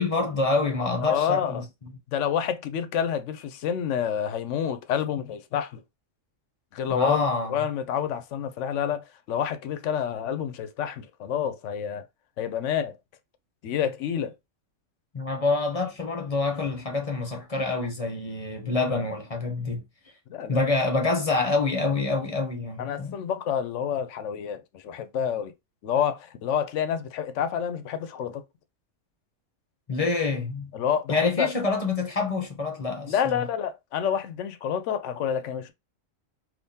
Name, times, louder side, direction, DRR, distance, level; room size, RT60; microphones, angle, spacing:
voice 1, 0.0-1.6 6.9-7.6 15.1-19.8 20.5-23.2 29.9-30.7 31.1-33.4, left 3 dB, 35° left, 0.6 m, -26 dB
voice 2, 0.8-1.6 2.1-5.8 6.7-7.2 7.5-12.1 12.4-13.0 13.6-14.3 20.3-20.7 22.8-25.5 25.8-28.4 30.7-31.5 33.1-35.7, left 8 dB, 70° left, 0.9 m, -28 dB
3.6 x 2.7 x 2.7 m
omnidirectional pair, 1.4 m